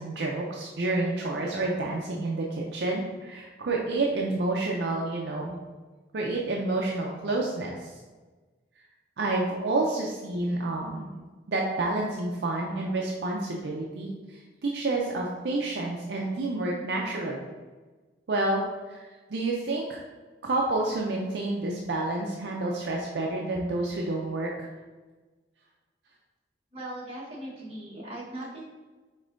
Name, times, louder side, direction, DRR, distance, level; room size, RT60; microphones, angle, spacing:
voice 1, 0.0-5.5 6.1-7.9 9.2-11.1 11.5-17.5 18.3-18.6 18.9-20.0 20.4-24.7, right 2 dB, 65° right, -1 dB, 0.5 m, -29 dB
voice 2, 26.7-28.6, right 1 dB, 30° right, -6 dB, 1.3 m, -39 dB
5.2 x 3.7 x 2.6 m, 1.3 s
head